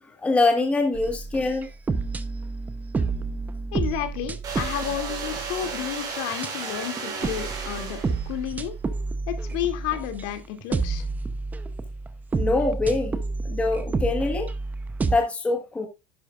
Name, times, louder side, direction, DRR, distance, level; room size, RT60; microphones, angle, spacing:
voice 1, 0.2-1.7 12.3-13.1 13.4-14.5 15.1-15.9, left 3 dB, 10° left, 1.3 m, -24 dB
sound 1, 0.9-6.0 6.3-6.5 7.0-10.3 10.6-15.2, right 4 dB, 10° right, 0.6 m, -30 dB
voice 2, 3.7-8.7 9.3-11.0, left 11 dB, 55° left, 2.3 m, -31 dB
sound 2, 4.4-8.5, right 5 dB, 25° right, 4.1 m, -34 dB
11.0 x 10.5 x 2.4 m
cardioid pair, 170°, 15 cm